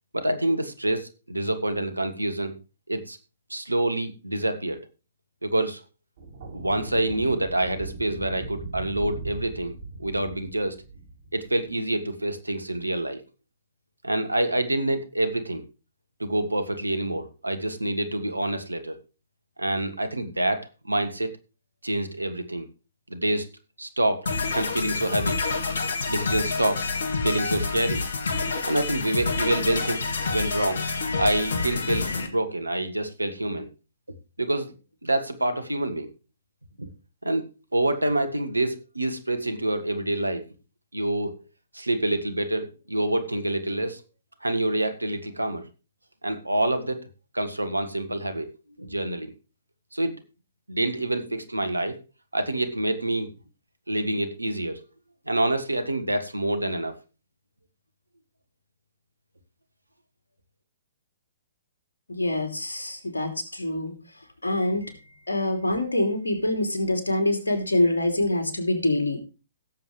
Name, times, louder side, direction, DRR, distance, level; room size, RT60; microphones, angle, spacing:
voice 1, 0.1-2.5 2.9-3.2 3.5-4.8 5.4-5.8 6.5-9.7 10.0-10.8 11.3-13.2 14.0-15.6 16.2-19.0 19.6-21.3 21.8-22.7 23.1-23.5 23.8-25.4 26.1-26.8 27.2-28.0 28.6-30.8 31.2-33.7 34.4-34.7 35.0-36.1 36.8-36.9 37.2-40.4 40.9-41.5 41.7-44.0 44.4-45.6 46.2-47.0 47.3-48.5 48.8-49.3 49.9-50.2 50.7-52.0 52.3-53.3 53.9-54.8 55.3-56.9, right 1 dB, 90° right, 9 dB, 1.5 m, -27 dB
sound 1, 6.2-11.8, right 3 dB, 55° right, 6.8 m, -39 dB
sound 2, 24.3-32.3, left 4 dB, 65° left, 1.9 m, -28 dB
voice 2, 62.1-63.9 64.4-65.0 65.3-69.2, left 1 dB, 80° left, 4 dB, 2.9 m, -25 dB
17.0 x 7.5 x 3.2 m, 0.32 s
figure-of-eight pair, 120°, 0 cm